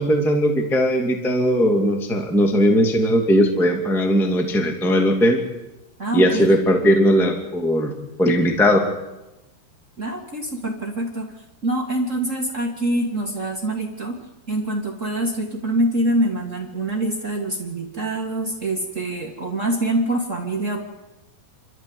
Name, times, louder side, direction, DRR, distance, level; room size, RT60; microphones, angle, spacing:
voice 1, 0.0-5.4 6.1-7.9 8.2-8.8, equal, ahead, 3 dB, 1.2 m, -18 dB
voice 2, 6.0-6.5 10.0-14.2 14.5-20.9, right 1 dB, 50° right, 0 dB, 0.9 m, -25 dB
27.5 x 13.5 x 8.0 m, 0.99 s
omnidirectional pair, 4.9 m